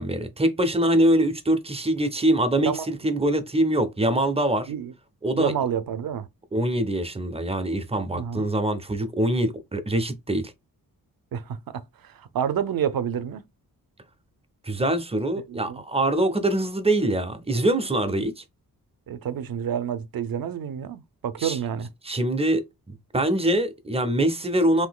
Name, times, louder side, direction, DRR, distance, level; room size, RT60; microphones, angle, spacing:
voice 1, 0.0-4.7 5.2-5.5 6.5-10.5 14.6-18.4 21.4-21.6 22.0-24.9, right 1 dB, 15° right, 0.5 m, -24 dB
voice 2, 5.3-6.3 8.1-8.4 11.3-11.8 12.2-13.4 15.5-15.8 19.1-21.9, right 8 dB, 65° right, 0.5 m, -29 dB
3.7 x 2.7 x 2.2 m
wide cardioid pair, 110°, 38 cm